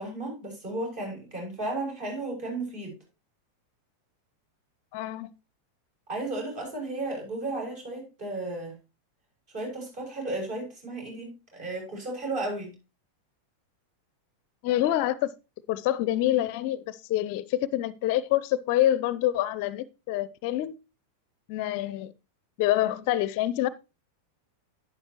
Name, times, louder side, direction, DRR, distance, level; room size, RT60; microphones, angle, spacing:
voice 1, 0.0-3.0 6.1-8.8 9.5-12.7, right 2 dB, 45° right, 7.0 m, -34 dB
voice 2, 4.9-5.3 14.6-15.3 15.7-20.8 21.5-22.1 22.6-23.7, left 13 dB, 45° left, 0.5 m, -26 dB
11.5 x 9.8 x 3.0 m
figure-of-eight pair, 90°, 0 cm